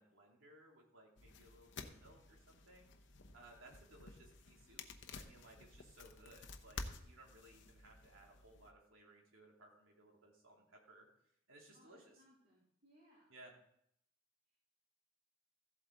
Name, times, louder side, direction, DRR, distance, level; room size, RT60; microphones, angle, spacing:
voice 1, 0.0-2.9 3.3-11.1 11.5-12.2 13.3-13.5, right 1 dB, 85° right, -1 dB, 2.8 m, -62 dB
sound 1, 1.2-8.7, left 3 dB, 60° left, 0.9 m, -53 dB
voice 2, 11.7-13.3, equal, 50° right, -8 dB, 3.5 m, -69 dB
15.0 x 8.0 x 3.9 m, 0.72 s
head